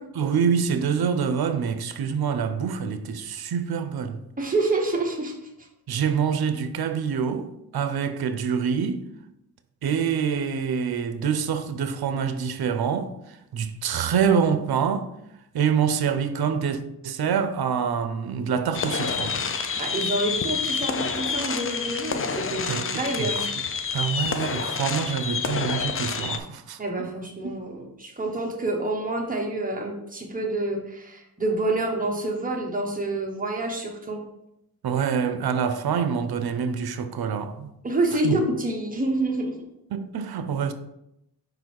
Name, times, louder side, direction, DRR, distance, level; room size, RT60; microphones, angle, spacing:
voice 1, 0.1-4.2 5.9-9.0 9.8-13.1 13.5-15.1 15.5-19.3 22.7-22.9 23.2-23.5 23.9-26.8 27.4-27.5 34.8-37.7 38.2-38.3 39.9-40.7, right 7 dB, 75° right, 0.7 m, -26 dB
voice 2, 4.4-5.4 19.8-23.5 26.8-34.2 37.8-39.5, right 2 dB, 20° right, 1.3 m, -27 dB
sound 1, 18.7-26.4, left 5 dB, 35° left, 0.5 m, -28 dB
5.3 x 4.0 x 4.6 m
cardioid pair, 90°, 38 cm